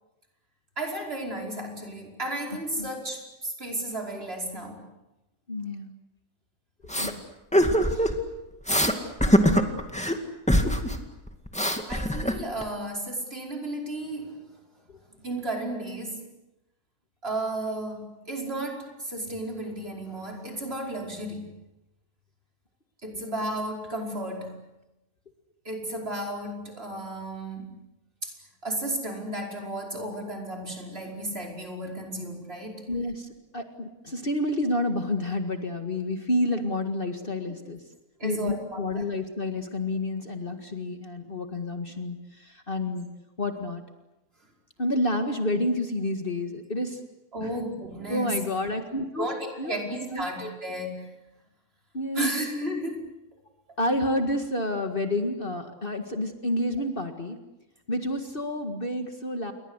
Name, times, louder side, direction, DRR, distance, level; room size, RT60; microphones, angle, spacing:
voice 1, 0.8-4.8 11.9-14.4 15.2-16.3 17.2-21.5 23.0-24.6 25.7-27.7 28.2-28.3 28.6-32.8 38.2-39.0 47.3-48.4 49.2-51.1 52.2-53.1, right 1 dB, 40° right, 1 dB, 5.4 m, -33 dB
voice 2, 5.5-5.9 6.8-7.3 7.9-8.1 14.9-15.0 32.9-37.8 38.2-43.1 43.4-43.8 44.8-47.0 47.4-47.5 48.1-49.3 49.6-50.3 51.9-52.3 53.8-57.4 57.9-59.5, left 1 dB, 35° left, 6 dB, 2.1 m, -29 dB
sound 1, 6.9-7.1 7.5-8.2 8.7-8.9 9.2-10.2 10.5-11.0 11.3-12.6, equal, 5° left, 2.1 m, -22 dB
29.5 x 22.5 x 8.1 m, 0.95 s
omnidirectional pair, 1.6 m